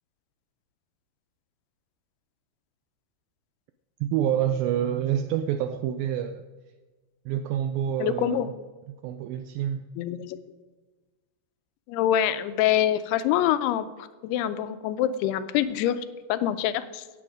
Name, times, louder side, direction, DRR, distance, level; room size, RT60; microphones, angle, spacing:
voice 1, 4.0-6.4 7.3-8.5 9.0-9.9, right 10 dB, 85° right, 9 dB, 2.1 m, -27 dB
voice 2, 8.0-8.5 10.0-10.4 11.9-17.0, left 11 dB, 90° left, 12 dB, 2.6 m, -25 dB
16.0 x 7.7 x 5.0 m, 1.3 s
omnidirectional pair, 4.6 m